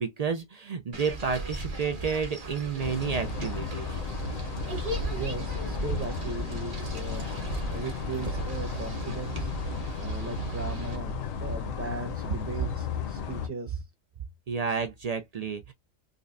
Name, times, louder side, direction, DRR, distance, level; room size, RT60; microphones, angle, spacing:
voice 1, 0.0-4.0 14.5-15.7, right 6 dB, 75° right, 0.3 m, -31 dB
sound 1, 0.9-11.0, right 2 dB, 40° right, 1.2 m, -37 dB
sound 2, 2.8-13.5, left 4 dB, 80° left, 1.1 m, -34 dB
voice 2, 5.1-7.3 7.7-9.5 10.0-13.8, right 3 dB, 15° right, 0.6 m, -38 dB
5.1 x 2.1 x 2.5 m
omnidirectional pair, 1.4 m